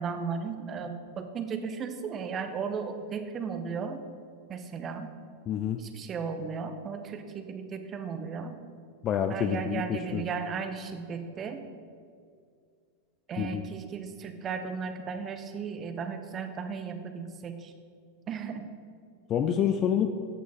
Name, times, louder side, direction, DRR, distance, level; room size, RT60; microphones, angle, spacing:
voice 1, 0.0-4.0 4.5-5.1 5.8-8.6 9.3-11.6 13.3-17.7 18.3-18.7, right 5 dB, 25° right, 7 dB, 0.9 m, -35 dB
voice 2, 5.5-5.8 9.0-10.2 13.4-13.7 19.3-20.1, left 9 dB, 30° left, 8 dB, 0.5 m, -27 dB
14.0 x 6.2 x 4.1 m, 2.2 s
figure-of-eight pair, 90°, 0 cm